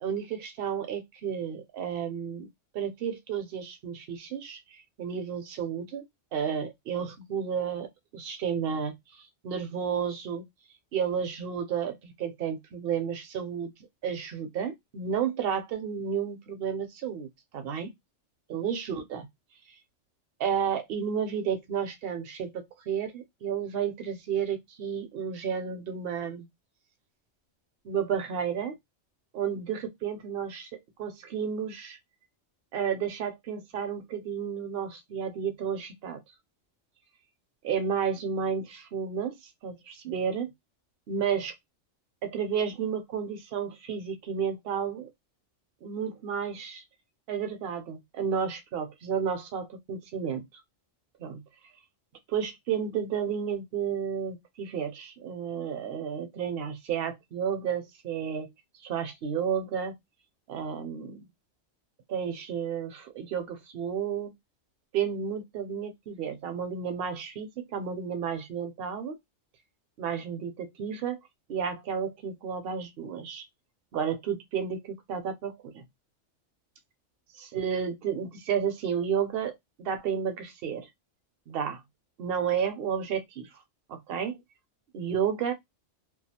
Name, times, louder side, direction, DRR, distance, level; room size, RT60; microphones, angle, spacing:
voice 1, 0.0-2.5 2.7-6.0 6.3-7.9 8.1-10.4 10.9-13.7 14.0-17.3 17.5-17.9 18.5-19.3 20.4-26.5 27.8-28.8 29.3-32.0 32.7-36.2 37.6-39.4 39.6-40.5 41.1-41.5 42.2-45.1 45.8-46.8 47.3-50.5 51.2-51.4 52.3-58.5 58.8-60.0 60.5-61.3 62.1-64.3 64.9-69.2 70.0-71.2 71.5-73.4 73.9-75.8 77.5-80.9 81.5-81.8 82.2-83.5 83.9-84.4 84.9-85.5, right 7 dB, 60° right, 0.7 m, -32 dB
2.3 x 2.3 x 2.7 m
omnidirectional pair, 1.3 m